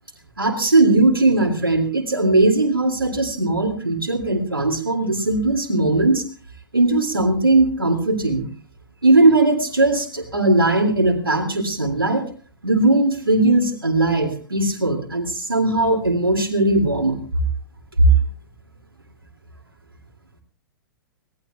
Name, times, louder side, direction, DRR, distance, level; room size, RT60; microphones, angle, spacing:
voice 1, 0.4-6.2 6.7-8.4 9.0-12.3 12.6-17.2, right 2 dB, 85° right, 2 dB, 2.5 m, -19 dB
23.5 x 18.0 x 2.3 m, 0.41 s
figure-of-eight pair, 105°, 12 cm